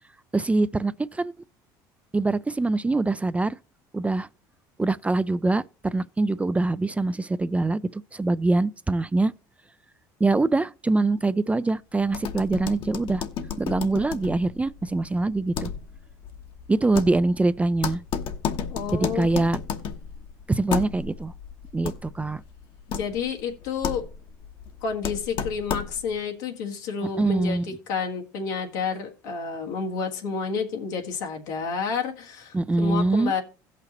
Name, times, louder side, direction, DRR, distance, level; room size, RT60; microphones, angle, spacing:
voice 1, 0.3-1.3 2.1-3.6 3.9-4.3 4.8-9.3 10.2-13.2 13.6-15.7 16.7-18.0 18.9-19.6 20.5-21.3 21.7-22.4 27.2-27.7 32.5-33.3, right 2 dB, 15° right, 0.4 m, -24 dB
sound 1, 12.1-26.2, left 7 dB, 60° left, 1.1 m, -34 dB
voice 2, 18.7-19.3 22.9-24.1 24.8-27.6 27.9-33.4, left 5 dB, 85° left, 1.6 m, -30 dB
16.5 x 5.8 x 2.9 m
supercardioid pair, 80°, 10 cm